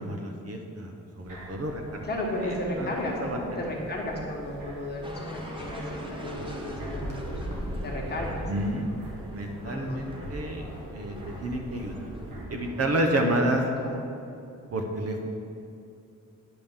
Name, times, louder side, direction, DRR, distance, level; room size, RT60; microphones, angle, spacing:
voice 1, 0.0-2.1 2.4-2.9 3.2-3.7 8.5-8.9 9.3-10.7 10.9-12.0 12.5-13.6 14.7-15.3, right 1 dB, 50° right, 3 dB, 0.8 m, -30 dB
sound 1, 1.2-12.4, equal, 80° right, 1.9 m, -41 dB
voice 2, 2.0-7.4 7.8-8.5 9.6-10.0 13.8-14.2, left 1 dB, 30° left, -2 dB, 1.3 m, -34 dB
sound 2, 5.0-13.4, right 1 dB, 15° right, 0.9 m, -42 dB
9.9 x 3.6 x 7.1 m, 2.7 s
wide cardioid pair, 160°, 32 cm